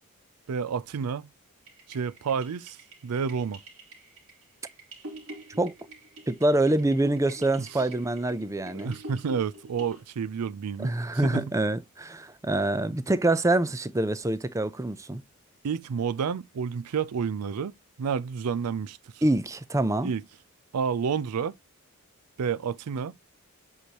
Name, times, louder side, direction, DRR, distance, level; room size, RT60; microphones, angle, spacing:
voice 1, 0.5-1.3 1.9-2.8 3.0-3.6 7.6-7.7 8.7-10.9 11.2-11.5 15.6-17.7 18.0-19.0 20.0-20.2 20.7-21.5 22.4-23.1, right 6 dB, 90° right, 0.4 m, -29 dB
sound 1, 1.7-10.0, right 1 dB, 70° right, 3.4 m, -46 dB
voice 2, 6.3-9.0 10.8-15.2 19.2-20.1, right 2 dB, 15° right, 0.5 m, -25 dB
8.1 x 4.9 x 2.9 m
head